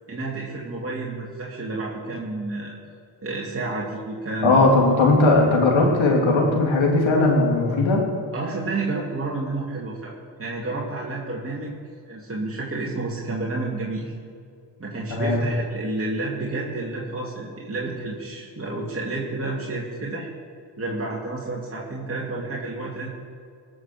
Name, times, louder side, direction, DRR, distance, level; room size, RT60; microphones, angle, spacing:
voice 1, 0.1-2.7 3.2-4.6 8.3-11.7 12.1-14.1 14.8-20.3 20.8-23.1, right 2 dB, 25° right, -4 dB, 2.9 m, -30 dB
voice 2, 4.4-8.0 15.1-15.4, left 2 dB, 65° left, 0 dB, 3.1 m, -18 dB
19.0 x 7.2 x 6.2 m, 2.3 s
hypercardioid pair, 40°, 50 cm